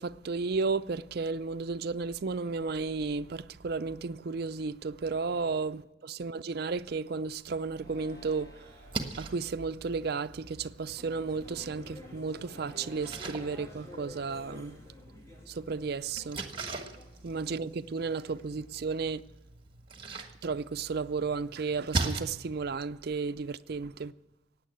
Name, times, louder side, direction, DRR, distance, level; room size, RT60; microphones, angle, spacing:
voice 1, 0.0-8.7 9.2-14.8 15.5-16.4 17.2-19.2 20.4-24.1, right 4 dB, 55° right, 0.5 m, -33 dB
sound 1, 7.7-9.2 9.9-10.4 12.4-13.9, left 1 dB, 50° left, 7.2 m, -55 dB
Splash splatter, 8.7-22.2, right 3 dB, 25° right, 1.3 m, -41 dB
sound 2, 11.0-18.8, left 2 dB, 15° left, 2.2 m, -51 dB
16.5 x 9.3 x 9.2 m
head